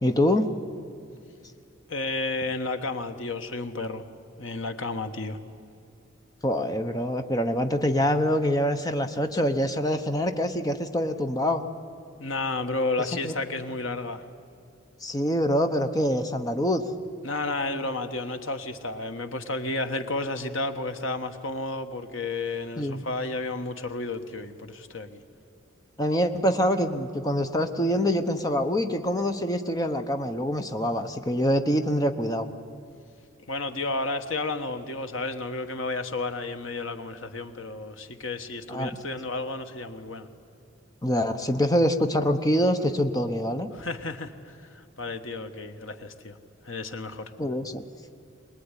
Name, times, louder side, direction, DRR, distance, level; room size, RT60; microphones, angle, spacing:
voice 1, 0.0-0.5 6.4-11.6 13.2-13.3 15.0-16.8 22.8-23.0 26.0-32.5 38.7-39.0 41.0-43.7 47.4-47.8, equal, 20° left, 7 dB, 1.0 m, -25 dB
voice 2, 1.9-4.0 4.4-5.4 12.2-14.2 17.2-25.2 33.5-40.3 43.7-46.4 46.6-47.3, left 2 dB, 75° left, 7 dB, 1.4 m, -32 dB
23.5 x 20.0 x 9.9 m, 2.4 s
head